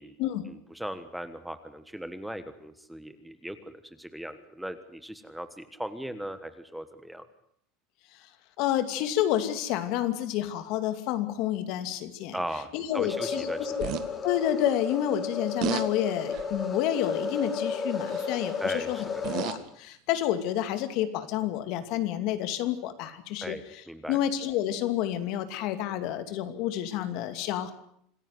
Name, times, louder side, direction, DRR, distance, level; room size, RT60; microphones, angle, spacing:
voice 1, 0.5-7.3 12.3-13.9 18.6-19.2 23.4-24.2, right 1 dB, ahead, 10 dB, 1.4 m, -38 dB
voice 2, 8.6-12.4 12.7-13.9 14.2-23.6 24.1-27.7, left 11 dB, 55° left, 10 dB, 2.6 m, -29 dB
sound 1, 12.9-19.4, left 5 dB, 20° left, 3.0 m, -33 dB
sound 2, 13.8-14.1 15.6-15.9 16.3-16.6 18.1-18.4 19.0-19.7 20.6-20.7, right 13 dB, 50° right, 1.8 m, -32 dB
26.5 x 14.5 x 9.6 m, 0.71 s
supercardioid pair, 145°, 0 cm